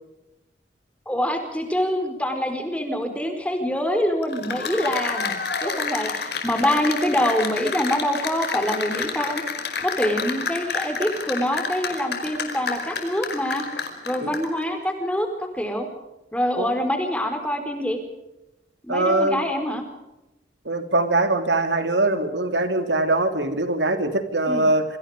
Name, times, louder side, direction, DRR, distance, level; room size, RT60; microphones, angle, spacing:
voice 1, 1.1-9.4 9.8-13.7 14.0-15.9 16.3-18.0 18.8-19.8 24.5-24.6, equal, 5° left, 5 dB, 4.5 m, -25 dB
Cheering / Applause, 4.2-14.6, left 5 dB, 65° left, 5.1 m, -29 dB
voice 2, 18.9-19.4 20.6-24.8, right 2 dB, 85° right, 8 dB, 3.2 m, -22 dB
27.5 x 26.0 x 5.1 m, 0.97 s
head